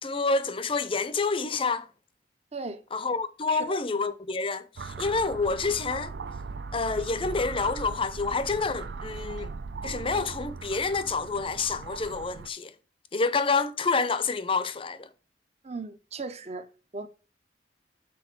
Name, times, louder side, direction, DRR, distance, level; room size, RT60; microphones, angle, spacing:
voice 1, 0.0-1.9 2.9-6.1 6.7-9.5 9.8-12.7 13.1-15.1, left 4 dB, 30° left, 0.6 m, -28 dB
voice 2, 2.5-2.8 3.5-3.8 15.6-16.7 16.9-17.1, right 3 dB, 35° right, 0.7 m, -37 dB
sound 1, 4.8-12.5, right 4 dB, 70° right, 0.4 m, -39 dB
6.3 x 4.2 x 5.9 m
head